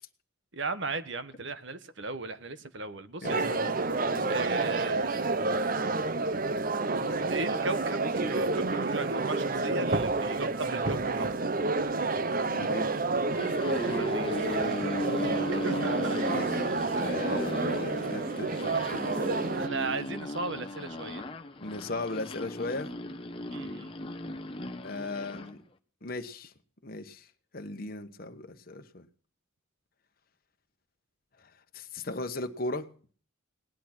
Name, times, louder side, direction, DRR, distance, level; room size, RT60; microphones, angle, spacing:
voice 1, 0.5-3.5 4.3-5.3 6.9-11.3 13.8-14.6 15.1-16.2 17.0-17.1 17.4-17.5 19.6-21.2 23.5-23.9, right 3 dB, 60° right, 12 dB, 1.4 m, -36 dB
voice 2, 3.2-3.8 4.1-4.3 12.4-12.9 16.2-19.3 21.6-22.9 24.8-25.6 26.0-26.5 26.8-27.3 27.5-29.1 31.7-32.8, left 2 dB, 45° left, 6 dB, 1.2 m, -37 dB
sound 1, 3.2-19.7, right 3 dB, 40° right, 0.7 m, -29 dB
sound 2, 13.2-25.5, left 1 dB, 25° left, 1.0 m, -37 dB
18.5 x 11.0 x 6.1 m, 0.44 s
head